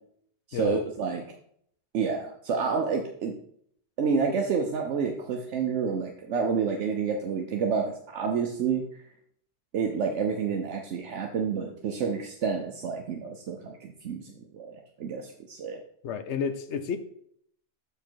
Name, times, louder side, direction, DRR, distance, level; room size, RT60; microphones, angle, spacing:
voice 1, 0.5-1.2 1.9-3.3 4.0-8.8 9.7-15.8, right 5 dB, 75° right, 2 dB, 1.0 m, -29 dB
voice 2, 16.0-17.0, left 6 dB, 70° left, 10 dB, 1.0 m, -31 dB
6.8 x 5.1 x 4.4 m, 0.67 s
omnidirectional pair, 1.3 m